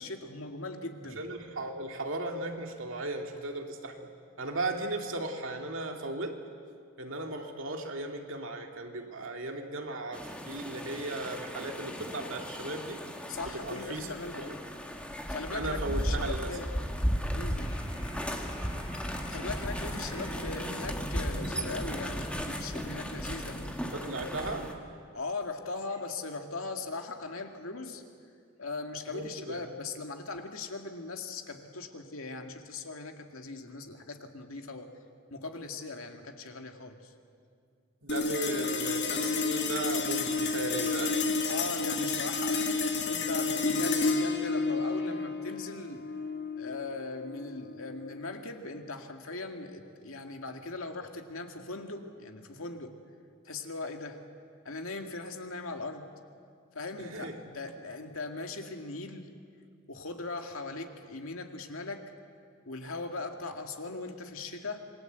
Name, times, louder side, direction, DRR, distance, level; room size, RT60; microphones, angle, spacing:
voice 1, 0.0-1.2 13.3-14.5 15.3-16.7 17.3-17.8 19.3-23.8 24.2-24.3 25.1-28.0 28.6-34.9 35.3-37.1 41.5-46.0 46.6-52.9 53.4-54.2 54.6-56.1 56.7-59.3 59.9-62.1 62.7-64.8, left 3 dB, 75° left, 4 dB, 2.2 m, -39 dB
voice 2, 1.2-4.1 4.4-6.4 7.0-13.0 13.5-14.5 15.5-16.6 23.8-24.7 29.1-29.7 38.0-41.2 57.0-57.4, right 2 dB, 65° right, 3 dB, 2.7 m, -36 dB
sound 1, 10.1-24.7, equal, 5° left, 1.9 m, -35 dB
sound 2, 17.6-20.6, equal, 25° left, 5.6 m, -48 dB
sound 3, 38.1-48.7, left 3 dB, 55° left, 2.2 m, -31 dB
27.0 x 21.5 x 8.2 m, 2.2 s
head